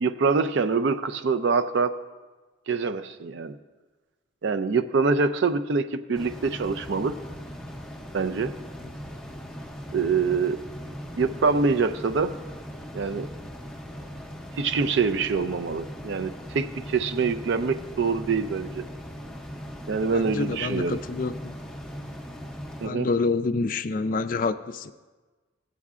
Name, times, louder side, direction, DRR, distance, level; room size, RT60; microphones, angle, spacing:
voice 1, 0.0-1.9 2.7-3.6 4.4-7.1 8.1-8.5 9.9-10.6 11.2-12.3 12.9-13.3 14.6-18.8 19.9-21.0 22.8-23.1, right 4 dB, 55° right, 10 dB, 0.4 m, -25 dB
sound 1, 6.1-22.9, equal, 5° left, 0.6 m, -39 dB
voice 2, 20.1-21.5 22.8-24.9, left 3 dB, 40° left, 11 dB, 0.3 m, -27 dB
16.5 x 8.2 x 2.4 m, 1.3 s
head